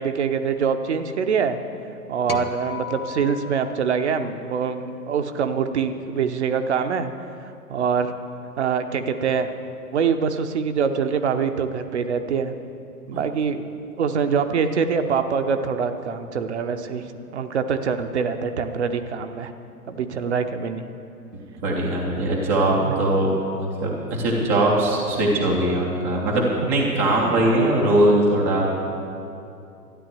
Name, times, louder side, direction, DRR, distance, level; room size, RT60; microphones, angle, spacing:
voice 1, 0.0-1.6 2.1-7.1 7.4-8.1 8.6-9.5 9.9-12.5 13.1-13.7 14.0-17.1 17.3-19.5 19.9-20.8 22.1-22.2 22.8-22.9 27.2-27.4, right 6 dB, 45° right, 8 dB, 0.9 m, -24 dB
sound 1, 2.3-4.8, left 6 dB, 70° left, 1.3 m, -35 dB
voice 2, 21.6-28.7, right 1 dB, 10° right, -3 dB, 0.5 m, -21 dB
12.5 x 10.0 x 7.5 m, 2.6 s
figure-of-eight pair, 120°, 47 cm